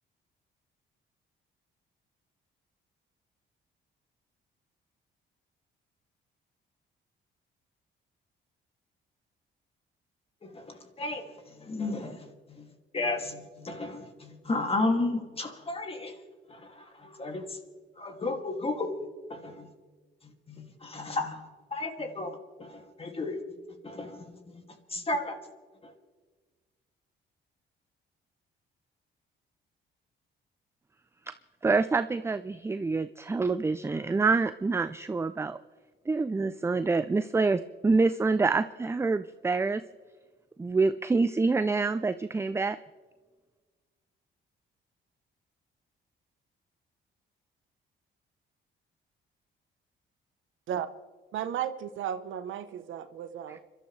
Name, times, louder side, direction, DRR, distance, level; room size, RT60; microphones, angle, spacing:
voice 1, 10.4-11.2 11.6-12.7 12.9-16.2 16.5-17.6 18.0-18.9 19.3-19.7 20.5-21.4 21.7-23.4 23.8-24.6 24.9-25.4 25.8-25.9, left 2 dB, 30° left, 2.4 m, -33 dB
voice 2, 31.6-35.6 36.1-39.8 40.6-42.8 53.5-53.6, right 4 dB, 15° right, 0.4 m, -26 dB
voice 3, 51.3-53.6, right 10 dB, 75° right, 0.9 m, -34 dB
30.0 x 12.5 x 3.3 m
cardioid pair, 90°, 20 cm